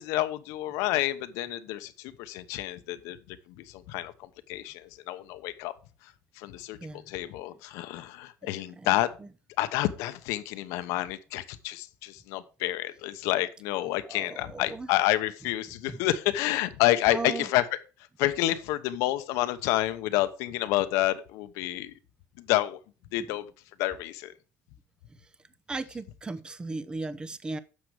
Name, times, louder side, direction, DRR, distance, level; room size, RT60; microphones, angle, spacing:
voice 1, 0.0-4.1 4.5-5.7 6.4-6.8 7.1-9.1 9.6-17.6 18.2-21.9 22.5-22.8 23.1-23.4 23.8-24.3, left 15 dB, 85° left, 1.0 m, -29 dB
voice 2, 6.8-7.1 8.4-9.3 14.0-14.9 15.9-16.0 17.1-17.5 23.3-23.4 25.1-25.3 25.7-27.6, right 3 dB, 15° right, 0.7 m, -37 dB
9.7 x 6.8 x 4.9 m
cardioid pair, 120°, 5 cm